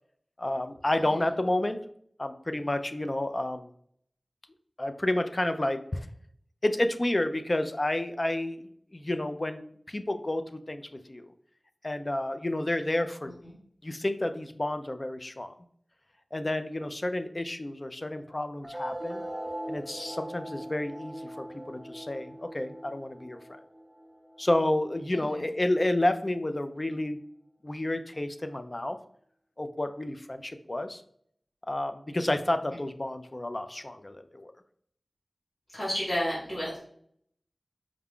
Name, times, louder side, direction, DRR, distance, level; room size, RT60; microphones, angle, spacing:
voice 1, 0.4-1.8 2.2-3.7 4.8-6.1 6.6-10.8 11.1-11.3 11.8-13.3 13.8-15.5 16.3-19.2 19.7-23.4 24.4-27.2 27.6-29.0 29.6-31.0 31.7-34.5, left 1 dB, 40° left, 9 dB, 0.4 m, -30 dB
sound 1, 18.6-25.6, right 1 dB, 15° right, 0.6 m, -41 dB
voice 2, 25.1-25.4 35.7-36.8, equal, 75° left, -8 dB, 1.7 m, -32 dB
4.8 x 2.2 x 3.6 m, 0.64 s
wide cardioid pair, 55°, 0 cm